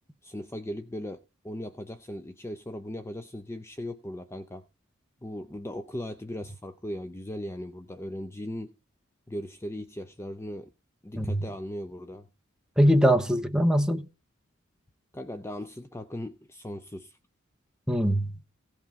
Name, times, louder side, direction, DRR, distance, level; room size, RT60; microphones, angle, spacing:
voice 1, 0.2-4.6 5.2-8.7 9.3-10.7 11.0-12.3 15.1-17.2, left 1 dB, 15° left, 0.5 m, -38 dB
voice 2, 12.8-14.0 17.9-18.4, equal, 5° right, 0.9 m, -22 dB
16.0 x 5.8 x 5.1 m
head